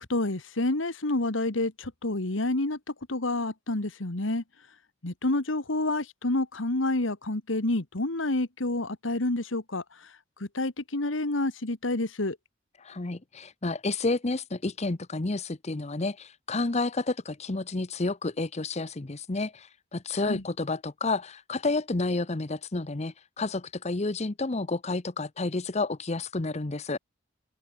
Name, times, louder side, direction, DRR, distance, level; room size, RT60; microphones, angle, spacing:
voice 1, 0.0-2.8 3.1-4.4 5.0-9.8 10.5-12.4 20.2-20.4, left 2 dB, 85° left, 1.9 m, -28 dB
voice 2, 12.8-27.0, left 3 dB, 35° left, 0.9 m, -30 dB
open air
head